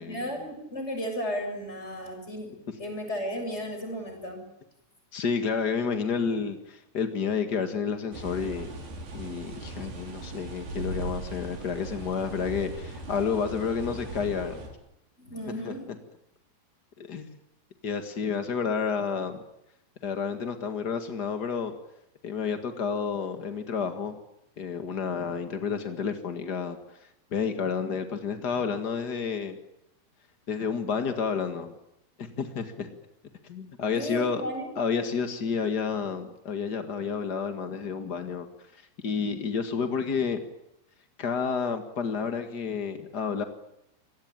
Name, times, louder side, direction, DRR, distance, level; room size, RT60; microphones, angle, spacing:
voice 1, 0.0-2.5 2.8-4.4 15.2-16.0 33.9-34.7, equal, 15° left, 4 dB, 7.3 m, -34 dB
voice 2, 5.1-8.7 9.1-14.6 15.6-15.7 17.0-17.3 17.8-19.4 20.0-21.7 22.2-24.1 24.6-29.6 30.5-31.7 32.2-32.9 33.4-34.4 34.8-38.5 38.7-40.4 41.2-43.4, left 6 dB, 65° left, 8 dB, 1.0 m, -30 dB
Rain On a Van, 8.1-14.7, right 2 dB, 65° right, 6.8 m, -39 dB
27.0 x 19.5 x 9.0 m, 0.82 s
omnidirectional pair, 4.8 m